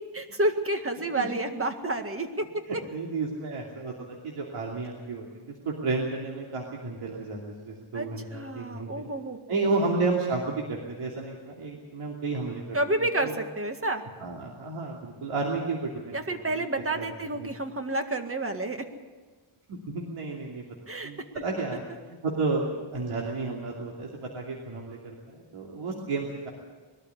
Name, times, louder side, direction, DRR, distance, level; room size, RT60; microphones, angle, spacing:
voice 1, 0.1-2.5 7.9-8.1 8.3-9.4 12.7-14.0 16.1-18.8 20.9-21.1, right 2 dB, 25° right, 6 dB, 2.0 m, -29 dB
voice 2, 2.7-9.1 9.5-13.3 14.2-16.6 16.9-17.1 17.3-17.5 19.7-20.6 21.0-26.5, right 3 dB, 85° right, -2 dB, 2.9 m, -32 dB
21.5 x 13.0 x 9.7 m, 1.4 s
wide cardioid pair, 105°, 49 cm